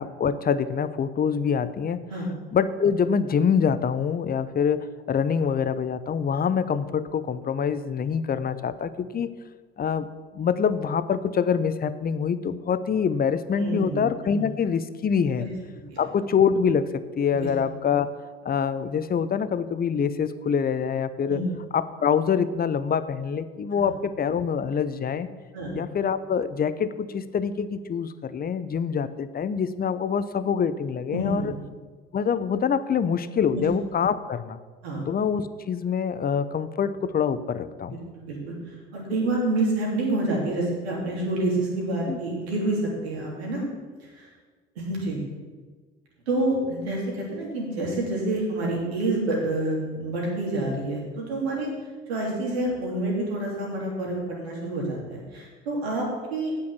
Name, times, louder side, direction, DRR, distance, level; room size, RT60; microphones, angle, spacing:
voice 1, 0.0-2.0 2.5-9.3 9.8-10.1 10.3-15.5 16.0-18.1 18.4-21.4 21.7-25.3 25.7-31.5 32.1-34.6 35.1-38.0 42.1-42.2, left 7 dB, 30° left, 13 dB, 0.7 m, -25 dB
voice 2, 13.6-14.0 14.4-14.5 15.4-15.5 15.9-16.0 17.3-17.5 21.3-21.5 23.7-23.9 25.5-25.8 31.1-31.6 33.5-33.6 34.8-35.0 37.9-38.5 38.9-43.6 44.2-44.3 44.7-45.2 46.3-51.7 52.1-56.5, right 2 dB, 85° right, -3 dB, 3.2 m, -28 dB
8.5 x 6.4 x 8.3 m, 1.4 s
hypercardioid pair, 65°, 31 cm